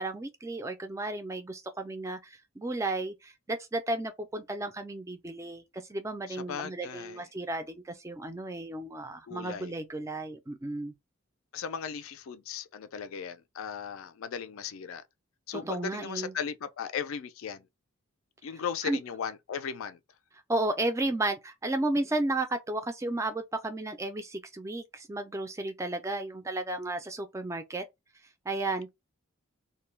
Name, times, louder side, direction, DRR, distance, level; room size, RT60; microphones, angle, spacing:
voice 1, 0.0-10.9 15.5-16.3 18.8-19.0 20.5-27.8 28.5-28.9, right 2 dB, 15° right, 0.3 m, -33 dB
voice 2, 6.3-7.2 9.3-9.7 11.5-15.0 15.5-17.6 18.4-20.0, left 7 dB, 70° left, 0.4 m, -37 dB
2.2 x 2.1 x 3.1 m
head